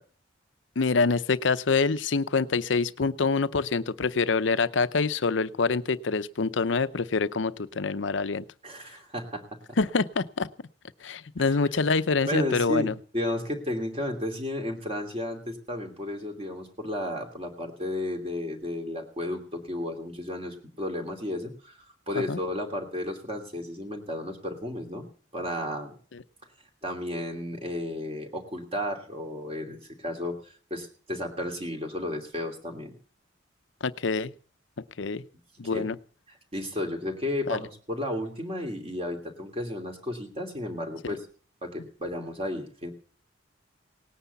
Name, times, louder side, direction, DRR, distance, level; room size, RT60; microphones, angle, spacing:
voice 1, 0.8-8.4 9.8-10.5 11.0-12.9 22.1-22.4 26.1-26.2 33.8-34.3 35.0-35.2 35.6-36.0 37.5-37.6, left 4 dB, 75° left, 14 dB, 0.7 m, -26 dB
voice 2, 8.6-9.6 11.4-11.5 12.3-21.8 22.1-25.0 25.3-25.9 26.8-30.4 30.7-32.9 35.7-35.9 36.3-41.2 41.6-42.9, left 1 dB, 30° right, 2 dB, 2.8 m, -33 dB
18.5 x 9.9 x 7.0 m, 0.43 s
head